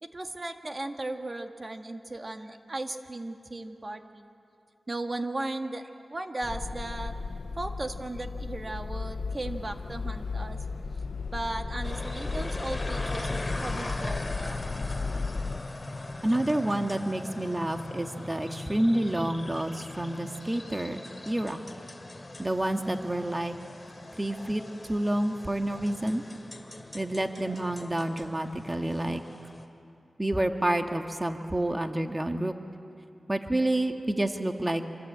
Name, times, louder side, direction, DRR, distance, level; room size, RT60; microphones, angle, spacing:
voice 1, 0.0-4.3 4.9-7.2 7.6-10.6 11.3-14.7, right 2 dB, 40° right, 5 dB, 1.8 m, -36 dB
sound 1, 6.4-15.6, left 4 dB, 65° left, 0.8 m, -35 dB
sound 2, 11.8-29.7, left 2 dB, 30° left, 2.6 m, -40 dB
voice 2, 16.2-21.6 22.4-23.5 24.2-24.6 24.9-26.2 26.9-29.2 30.2-32.5 33.3-34.9, right 1 dB, 20° right, 5 dB, 1.6 m, -29 dB
26.5 x 25.0 x 8.6 m, 2.6 s
cardioid pair, 55°, 0 cm